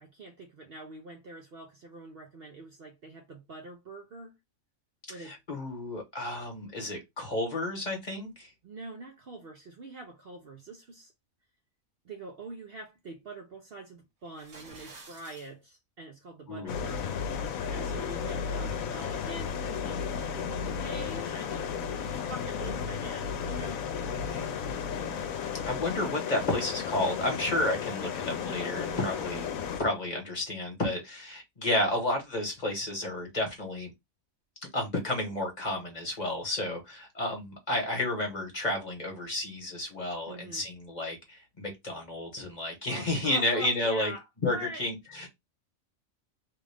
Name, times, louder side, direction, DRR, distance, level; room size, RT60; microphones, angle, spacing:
voice 1, 0.0-4.4 5.1-5.4 8.6-11.1 12.0-21.7 22.0-23.9 28.9-29.3 40.3-40.6 42.9-44.8, right 2 dB, 55° right, 0.7 m, -44 dB
voice 2, 5.2-8.5 16.5-16.8 24.1-24.5 25.7-29.5 29.8-33.9 34.7-44.1 44.4-45.3, left 1 dB, 35° left, 1.3 m, -31 dB
sound 1, 14.3-15.5, right 3 dB, 75° right, 1.6 m, -50 dB
sound 2, 16.7-29.8, left 7 dB, 85° left, 1.0 m, -34 dB
3.1 x 2.4 x 3.4 m
omnidirectional pair, 1.4 m